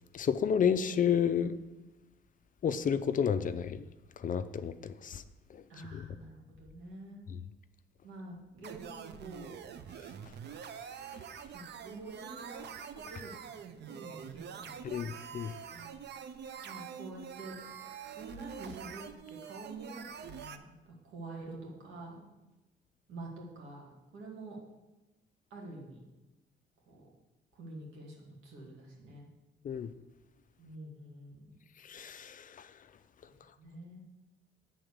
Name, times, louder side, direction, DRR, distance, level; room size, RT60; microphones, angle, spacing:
voice 1, 0.1-1.6 2.6-3.8 4.2-5.2 5.5-5.6 5.9-6.1 14.8-15.6 29.6-29.9 31.8-32.7, left 7 dB, 40° left, 12 dB, 0.4 m, -31 dB
voice 2, 5.7-7.2 8.0-9.5 11.5-12.7 13.0-15.0 15.7-16.0 16.6-22.2 23.1-24.6 25.5-26.0 26.9-27.0 27.5-29.3 30.6-31.6 33.6-34.0, right 2 dB, 85° right, -2 dB, 2.2 m, -48 dB
sound 1, 8.6-20.6, right 7 dB, 60° right, 0.6 m, -45 dB
7.7 x 3.9 x 6.7 m, 1.0 s
cardioid pair, 90°, 20 cm